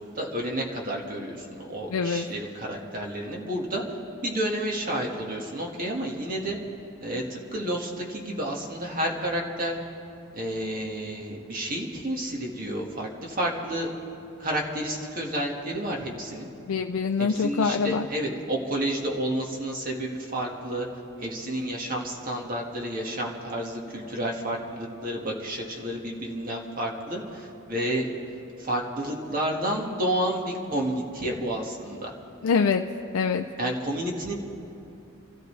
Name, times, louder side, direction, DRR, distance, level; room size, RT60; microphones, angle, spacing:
voice 1, 0.2-3.8 4.2-6.6 7.0-9.8 10.3-13.9 14.4-16.5 17.2-20.9 21.2-28.1 28.6-32.1 33.6-34.3, right 1 dB, 40° right, -1 dB, 1.8 m, -30 dB
voice 2, 1.9-2.3 16.7-18.1 32.4-32.8 33.1-33.5, left 5 dB, 85° left, 5 dB, 0.4 m, -24 dB
27.5 x 13.5 x 3.3 m, 2.7 s
head